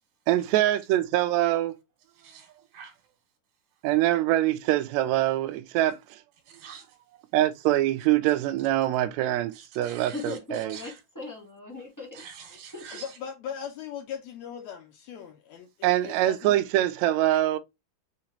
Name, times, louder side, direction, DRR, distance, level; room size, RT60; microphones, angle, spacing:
voice 1, 0.3-1.8 3.8-6.2 7.3-10.8 15.8-17.6, right 14 dB, 85° right, 1.6 m, -24 dB
voice 2, 2.1-3.0 6.5-7.0 9.5-11.0 12.1-13.2, right 6 dB, 70° right, 2.2 m, -46 dB
voice 3, 10.1-13.0, left 3 dB, 10° left, 0.8 m, -40 dB
voice 4, 13.0-16.6, left 8 dB, 75° left, 1.7 m, -39 dB
5.5 x 2.9 x 2.9 m
omnidirectional pair, 3.7 m